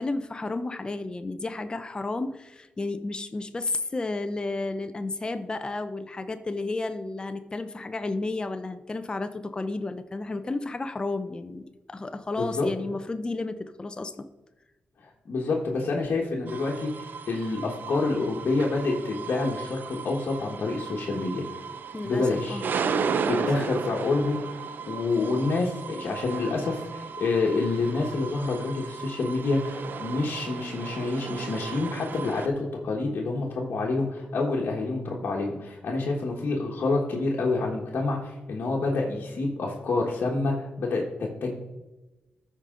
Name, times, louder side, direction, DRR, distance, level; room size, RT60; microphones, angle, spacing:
voice 1, 0.0-14.3 21.9-22.7 23.2-23.5, left 2 dB, 25° left, 9 dB, 0.5 m, -32 dB
voice 2, 12.4-12.7 15.0-21.6 22.0-22.6 23.2-41.5, left 3 dB, 65° left, -2 dB, 1.4 m, -28 dB
sound 1, 16.5-32.5, right 6 dB, 65° right, 0.6 m, -35 dB
13.5 x 5.0 x 3.8 m, 1.1 s
cardioid pair, 85°, 3 cm